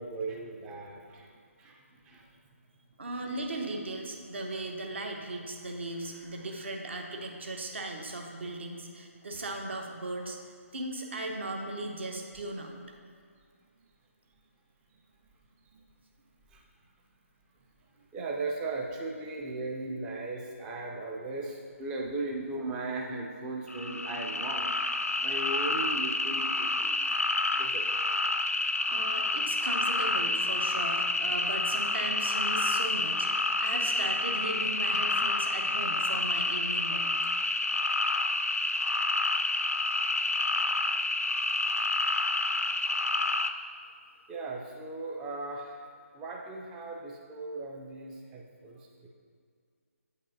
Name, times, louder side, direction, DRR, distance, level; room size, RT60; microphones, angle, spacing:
voice 1, 0.0-2.3 15.7-15.8 16.5-16.6 18.1-24.9 25.2-27.0 27.5-27.8 44.3-45.8 46.1-49.1, right 2 dB, 10° right, -1 dB, 0.4 m, -37 dB
voice 2, 3.0-10.4 10.7-12.7 28.9-37.1, right 2 dB, 50° right, 3 dB, 0.8 m, -37 dB
sound 1, 23.7-43.5, left 2 dB, 85° left, 0.4 m, -29 dB
8.4 x 5.3 x 2.7 m, 2.1 s
figure-of-eight pair, 145°, 8 cm